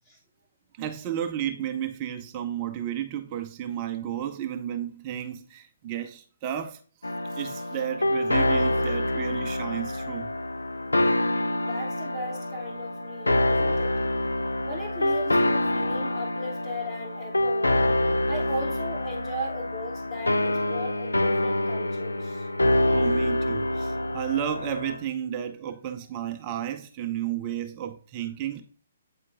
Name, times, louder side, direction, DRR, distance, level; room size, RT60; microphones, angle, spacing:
voice 1, 0.7-10.3 22.2-22.3 22.8-28.6, right 10 dB, 30° right, 0.5 m, -32 dB
sound 1, 7.0-25.0, left 1 dB, 75° left, 0.4 m, -26 dB
voice 2, 11.6-14.0 14.6-17.8 18.3-22.5, left 1 dB, 25° left, 1.1 m, -37 dB
8.5 x 4.4 x 2.5 m
figure-of-eight pair, 130°, 0 cm